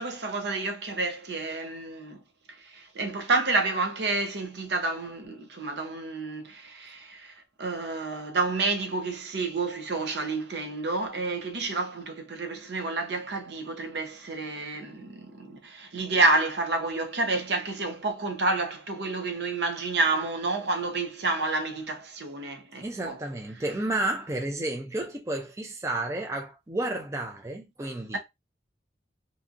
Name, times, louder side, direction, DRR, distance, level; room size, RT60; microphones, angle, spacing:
voice 1, 0.0-2.2 2.5-23.2, right 3 dB, 70° right, 0.7 m, -29 dB
voice 2, 22.8-28.2, right 2 dB, 15° right, 0.4 m, -31 dB
2.6 x 2.5 x 2.4 m
head